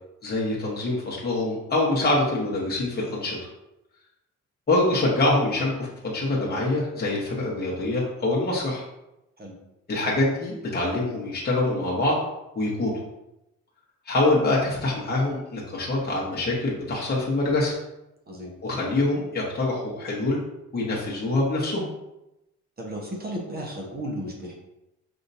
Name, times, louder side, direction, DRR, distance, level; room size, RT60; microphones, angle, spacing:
voice 1, 0.2-3.4 4.7-8.8 9.9-12.2 12.5-13.0 14.1-17.8 18.6-20.4 20.7-21.9, left 2 dB, 30° left, -5 dB, 1.2 m, -25 dB
voice 2, 22.8-24.5, equal, 30° right, -1 dB, 1.2 m, -34 dB
5.5 x 2.8 x 2.7 m, 0.91 s
cardioid pair, 90°, 30 cm